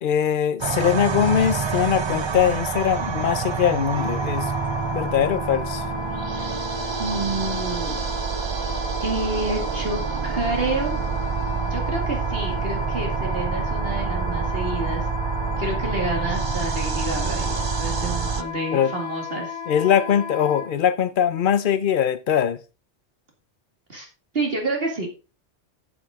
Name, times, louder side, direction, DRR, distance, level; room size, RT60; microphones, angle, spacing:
voice 1, 0.0-4.5 4.9-5.9 18.7-18.9 19.7-22.6, left 9 dB, 50° left, 0.8 m, -21 dB
sound 1, 0.6-18.4, right 6 dB, 40° right, 0.4 m, -27 dB
Wind instrument woodwind instrument, 3.9-20.7, left 5 dB, 20° left, 1.7 m, -34 dB
voice 2, 7.0-8.0 9.0-11.0 11.7-15.0 15.6-19.6 23.9-24.1 24.3-25.1, right 2 dB, 55° right, 2.4 m, -29 dB
10.5 x 7.7 x 3.7 m
omnidirectional pair, 1.2 m